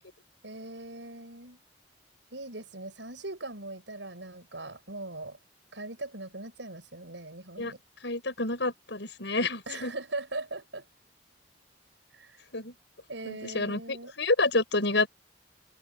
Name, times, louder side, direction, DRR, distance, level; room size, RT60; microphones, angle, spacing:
voice 1, 0.4-1.6 2.3-5.4 5.7-7.8 9.7-10.9 12.1-12.4 13.1-14.1, right 2 dB, 90° right, 6.4 m, -40 dB
voice 2, 8.0-9.9 12.5-12.7 13.2-15.1, left 2 dB, 75° left, 6.4 m, -28 dB
head